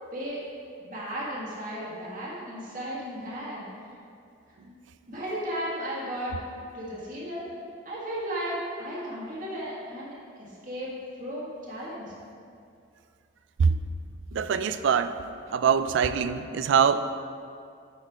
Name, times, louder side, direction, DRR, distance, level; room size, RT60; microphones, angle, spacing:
voice 1, 0.9-3.7 4.6-4.8 5.1-6.4 6.7-7.5 7.8-10.9 11.2-12.1, equal, 40° right, -7 dB, 1.6 m, -35 dB
voice 2, 14.3-15.2 15.5-17.1, right 6 dB, 65° right, 11 dB, 0.3 m, -23 dB
8.9 x 4.2 x 4.9 m, 2.4 s
head